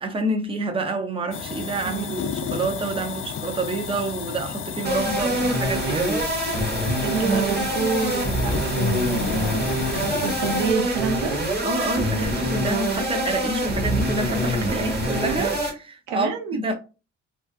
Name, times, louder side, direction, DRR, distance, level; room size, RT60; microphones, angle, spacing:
voice 1, 0.0-6.3 11.6-16.7, right 2 dB, 20° right, 0.6 m, -28 dB
sound 1, 1.3-10.7, left 7 dB, 45° left, 0.4 m, -32 dB
sound 2, 4.8-15.7, right 1 dB, 35° right, 1.1 m, -25 dB
voice 2, 7.0-9.6 10.2-11.3 16.1-16.6, right 4 dB, 85° right, 0.6 m, -27 dB
2.6 x 2.4 x 2.3 m
cardioid pair, 90°, 30 cm